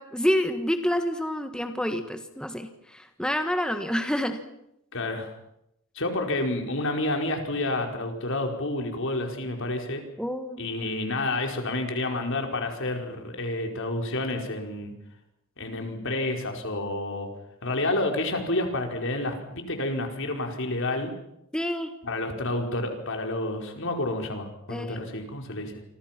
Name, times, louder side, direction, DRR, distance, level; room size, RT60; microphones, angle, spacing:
voice 1, 0.0-4.4 10.2-10.6 21.5-21.9 24.7-25.1, equal, 5° left, 7 dB, 1.6 m, -28 dB
voice 2, 4.9-5.3 5.9-10.0 10.6-14.9 15.6-17.3 17.6-21.1 22.0-25.8, left 2 dB, 65° left, 3 dB, 4.8 m, -29 dB
28.5 x 25.0 x 6.0 m, 0.80 s
head